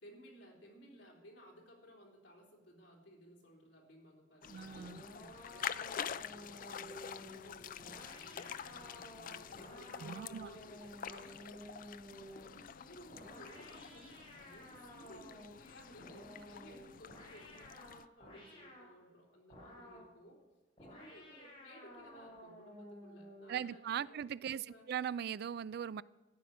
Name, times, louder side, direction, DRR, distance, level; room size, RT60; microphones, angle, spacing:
voice 1, 0.0-20.4 20.8-24.9, equal, 70° left, -2 dB, 3.8 m, -58 dB
sound 1, 4.4-18.1, left 8 dB, 50° left, 0.4 m, -47 dB
voice 2, 4.5-5.0 10.0-10.5 23.5-26.0, right 8 dB, 60° right, 19 dB, 0.3 m, -40 dB
sound 2, 4.7-12.5 13.1-15.6 16.0-18.9 19.5-20.1 20.8-23.6, equal, 30° left, 5.7 m, -53 dB
14.0 x 9.4 x 6.1 m, 1.1 s
head